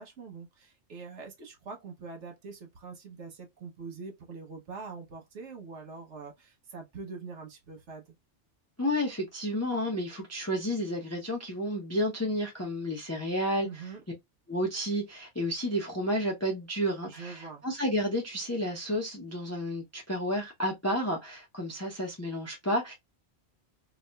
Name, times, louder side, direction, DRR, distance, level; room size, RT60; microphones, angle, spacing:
voice 1, 0.0-8.1 13.6-14.0 17.1-17.6, right 4 dB, 75° right, 1.2 m, -44 dB
voice 2, 8.8-13.9 14.5-22.9, equal, 15° left, 0.6 m, -31 dB
4.1 x 2.4 x 2.2 m
omnidirectional pair, 1.2 m